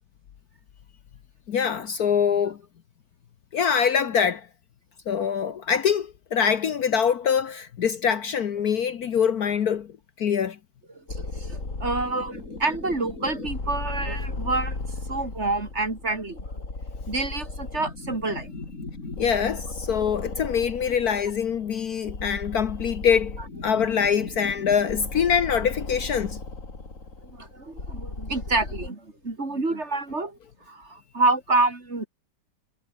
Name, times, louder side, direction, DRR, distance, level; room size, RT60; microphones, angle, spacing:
voice 1, 1.5-2.6 3.5-4.5 5.1-10.6 19.2-26.4, left 7 dB, 60° left, 1.5 m, -24 dB
sound 1, 11.1-28.9, left 3 dB, 45° left, 4.0 m, -36 dB
voice 2, 11.1-14.8 15.1-16.5 17.1-18.5 27.2-30.4 30.7-32.1, right 3 dB, 40° right, 3.8 m, -28 dB
omnidirectional pair, 1.9 m